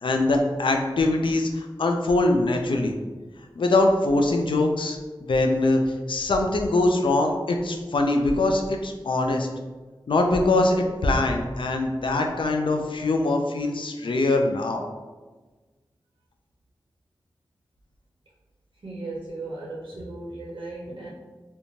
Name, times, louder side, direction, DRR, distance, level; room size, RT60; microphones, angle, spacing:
voice 1, 0.0-2.9 3.6-9.5 10.1-14.9, left 2 dB, 70° left, 3 dB, 0.3 m, -23 dB
voice 2, 18.8-21.1, right 2 dB, 75° right, -5 dB, 0.5 m, -36 dB
2.5 x 2.2 x 3.0 m, 1.3 s
wide cardioid pair, 60°, 9 cm